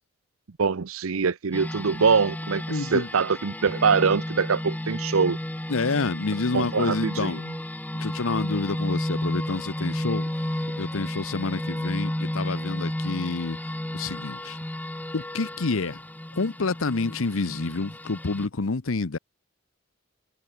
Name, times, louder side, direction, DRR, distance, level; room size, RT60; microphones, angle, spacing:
voice 1, 0.6-5.4 6.5-7.3, right 5 dB, 90° right, 0.7 m, -23 dB
sound 1, 1.5-18.5, left 1 dB, 10° left, 0.6 m, -32 dB
voice 2, 2.7-3.1 5.7-7.4 7.9-10.3 10.8-13.6 13.9-14.6 15.1-16.0 16.3-19.2, left 3 dB, 75° left, 0.9 m, -28 dB
head